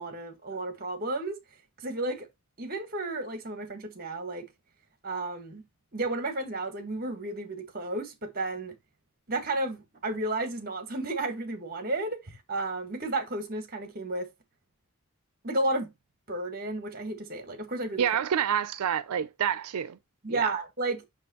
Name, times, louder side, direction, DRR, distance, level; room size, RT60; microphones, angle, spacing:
voice 1, 0.0-1.4 1.8-2.3 2.6-4.5 5.0-5.6 5.9-8.7 9.3-14.3 15.4-15.9 16.3-18.1 20.2-21.0, right 2 dB, 40° right, 1.5 m, -32 dB
voice 2, 18.0-20.0 20.3-20.5, right 8 dB, 90° right, 0.4 m, -28 dB
6.1 x 6.1 x 2.9 m
head